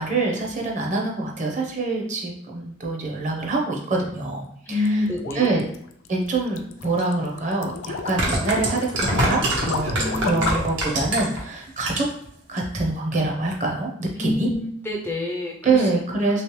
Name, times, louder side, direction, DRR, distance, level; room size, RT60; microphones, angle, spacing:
voice 1, 0.0-5.0 5.4-5.6 6.1-12.0 12.5-14.5 15.6-16.4, right 3 dB, 40° right, 0 dB, 0.7 m, -25 dB
sound 1, 4.7-10.8, left 4 dB, 85° left, 0.4 m, -33 dB
voice 2, 4.7-5.6 10.0-10.5 14.2-15.9 16.3-16.4, left 2 dB, 10° left, -1 dB, 0.3 m, -27 dB
sound 2, 7.0-7.1 8.0-11.4 11.8-12.3 12.6-12.7, right 1 dB, 80° right, 1.1 m, -24 dB
3.2 x 3.1 x 3.1 m, 0.71 s
head